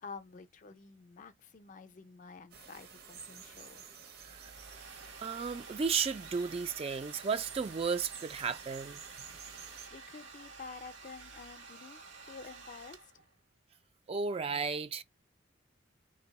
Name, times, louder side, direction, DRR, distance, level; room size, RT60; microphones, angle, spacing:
voice 1, 0.0-3.8 9.4-13.2, left 4 dB, 40° left, 0.4 m, -50 dB
sound 1, 2.5-9.9, right 7 dB, 55° right, 0.8 m, -51 dB
Domestic sounds home sounds, 4.1-13.4, right 4 dB, 80° right, 1.5 m, -51 dB
voice 2, 5.2-9.0 14.1-15.0, right 5 dB, 30° right, 0.3 m, -34 dB
3.8 x 2.6 x 4.0 m
head